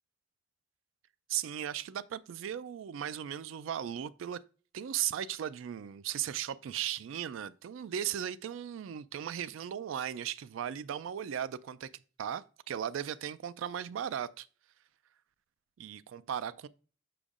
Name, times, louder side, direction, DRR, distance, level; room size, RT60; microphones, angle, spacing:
voice 1, 1.3-4.4 4.7-11.9 12.2-14.5 15.8-16.7, right 10 dB, 75° right, 0.3 m, -37 dB
6.8 x 6.1 x 2.4 m
head